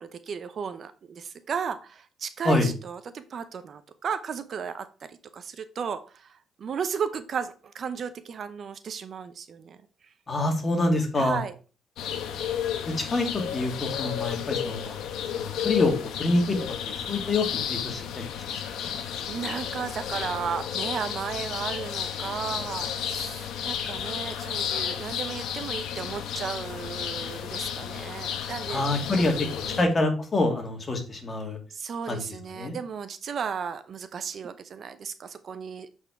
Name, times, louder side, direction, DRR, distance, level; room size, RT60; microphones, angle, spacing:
voice 1, 0.0-9.8 11.2-11.5 18.5-18.9 19.3-28.8 29.4-30.0 31.7-35.9, right 6 dB, 55° right, 12 dB, 0.7 m, -35 dB
voice 2, 10.3-11.4 13.0-15.0 15.4-16.6 16.9-18.9 28.7-29.3 29.8-31.6 32.1-32.2 32.6-32.8, left 2 dB, 30° left, 3 dB, 2.3 m, -26 dB
sound 1, 12.0-29.8, left 8 dB, 85° left, 1.0 m, -32 dB
7.6 x 4.5 x 4.5 m, 0.36 s
cardioid pair, 90°, 0 cm